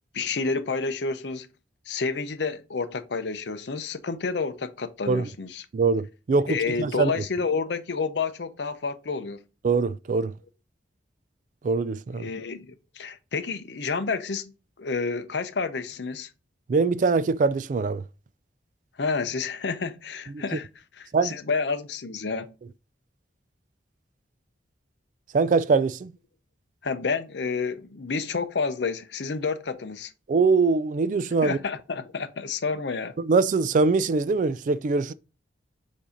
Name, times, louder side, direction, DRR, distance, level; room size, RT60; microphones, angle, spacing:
voice 1, 0.1-1.5 1.9-5.7 6.5-9.4 12.2-14.5 14.8-16.3 19.0-20.7 21.0-22.5 26.8-30.1 31.4-33.2, left 4 dB, 70° left, 0.6 m, -29 dB
voice 2, 5.7-7.1 9.6-10.3 11.6-12.3 16.7-18.0 20.3-20.4 21.1-21.4 25.3-26.1 30.3-31.6 33.2-35.1, right 4 dB, 45° right, 0.3 m, -23 dB
7.3 x 2.7 x 5.0 m
head